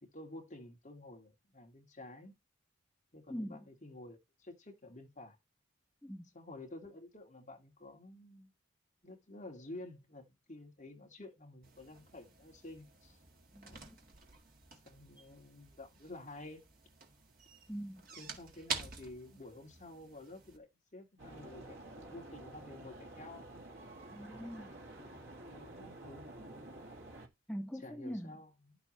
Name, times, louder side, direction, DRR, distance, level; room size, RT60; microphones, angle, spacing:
voice 1, 0.0-2.3 3.1-5.4 6.3-8.5 9.0-13.2 13.6-13.9 14.8-16.6 18.2-23.5 24.6-26.8 27.8-28.8, left 2 dB, 35° left, 2.2 m, -51 dB
voice 2, 3.3-3.7 6.0-6.3 13.5-14.0 17.7-18.0 24.1-24.7 27.5-28.4, equal, 5° left, 0.6 m, -43 dB
sound 1, 11.6-20.6, right 5 dB, 45° right, 1.8 m, -48 dB
sound 2, 21.2-27.3, right 1 dB, 60° right, 2.2 m, -50 dB
10.5 x 6.9 x 3.1 m
head